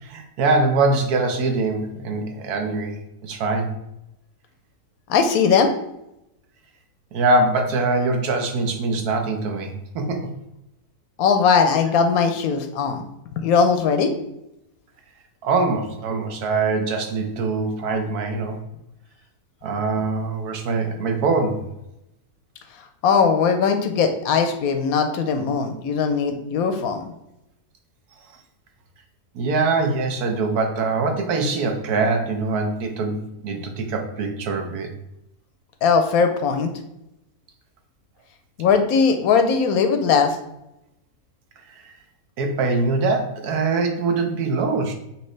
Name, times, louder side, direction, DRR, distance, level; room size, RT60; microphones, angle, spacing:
voice 1, 0.0-3.8 7.1-10.3 15.4-18.6 19.6-21.7 29.3-34.9 41.8-41.9 42.4-44.9, right 3 dB, 75° right, 4 dB, 1.2 m, -23 dB
voice 2, 5.1-5.7 11.2-13.0 13.4-14.1 23.0-27.0 35.8-36.7 38.6-40.4, left 5 dB, 75° left, 7 dB, 1.0 m, -19 dB
5.8 x 2.7 x 3.1 m, 0.86 s
omnidirectional pair, 1.7 m